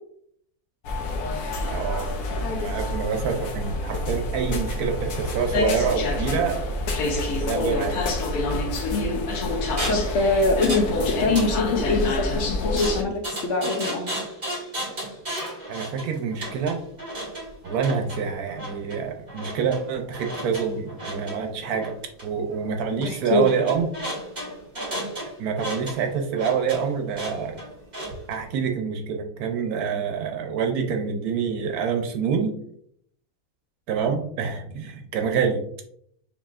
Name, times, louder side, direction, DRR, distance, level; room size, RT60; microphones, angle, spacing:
sound 1, 0.8-13.0, left 2 dB, 90° left, 1.3 m, -27 dB
voice 1, 1.7-2.2 2.5-6.6 7.4-8.0 15.7-16.8 17.6-21.9 22.2-23.9 25.4-27.6 28.3-32.5 33.9-35.6, right 6 dB, 80° right, 4 dB, 1.1 m, -26 dB
voice 2, 8.9-9.2 9.9-10.9 11.2-14.1 22.9-23.5, left 3 dB, 60° left, 3 dB, 0.9 m, -23 dB
sound 2, 9.8-10.1 10.6-10.9 11.2-12.0 12.8-28.4, right 1 dB, 30° right, 1.9 m, -34 dB
6.9 x 2.9 x 2.4 m, 0.67 s
omnidirectional pair, 1.6 m